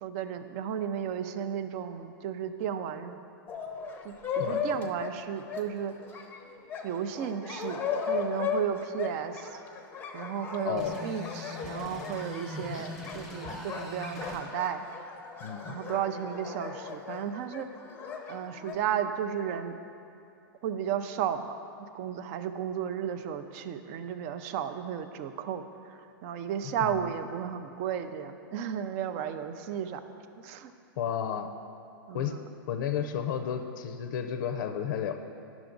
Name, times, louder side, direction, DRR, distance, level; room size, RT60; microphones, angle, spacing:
voice 1, 0.0-3.2 4.0-5.9 6.8-9.6 10.1-14.9 15.6-17.7 18.3-19.7 20.6-21.5 21.9-25.6 25.9-30.0 30.4-30.7 32.1-32.4, right 9 dB, 40° right, 10 dB, 0.5 m, -34 dB
sound 1, 3.5-18.7, left 6 dB, 15° left, 0.6 m, -37 dB
voice 2, 10.6-11.0 12.7-12.9 15.4-15.7 26.8-27.0 31.0-31.5 32.1-32.3 32.7-35.1, left 8 dB, 55° left, 7 dB, 0.5 m, -32 dB
sound 2, 10.8-14.4, left 2 dB, 5° right, 1.1 m, -42 dB
10.5 x 6.0 x 3.8 m, 2.6 s
hypercardioid pair, 145°, 12 cm